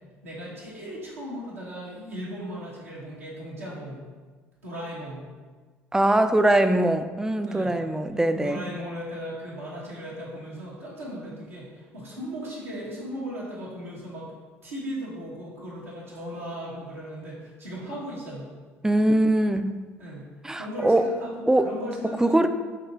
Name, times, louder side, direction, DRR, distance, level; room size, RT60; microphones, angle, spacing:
voice 1, 0.2-4.0 4.6-5.2 7.4-7.7 8.4-14.3 14.6-18.5 20.0-22.5, equal, 90° right, -8 dB, 1.2 m, -37 dB
voice 2, 5.9-8.6 18.8-19.8 20.4-21.1 21.5-21.7 22.2-22.5, right 1 dB, 10° right, 9 dB, 0.3 m, -22 dB
5.9 x 2.9 x 2.7 m, 1.4 s
hypercardioid pair, 55°, 7 cm